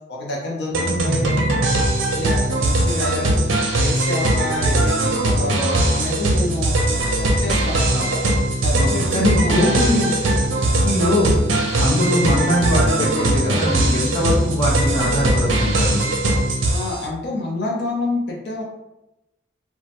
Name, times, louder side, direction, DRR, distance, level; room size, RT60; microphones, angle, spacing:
voice 1, 0.1-1.4 2.2-3.4 3.8-6.8 7.2-8.2 8.6-10.2 16.7-18.6, left 2 dB, 60° left, -2 dB, 0.5 m, -28 dB
sound 1, 0.7-17.0, right 1 dB, 90° right, 0.5 m, -20 dB
voice 2, 8.7-10.0 10.3-10.4 10.8-11.3 11.8-16.1, left 1 dB, 20° left, -5 dB, 0.7 m, -21 dB
3.0 x 2.2 x 2.8 m, 0.92 s
head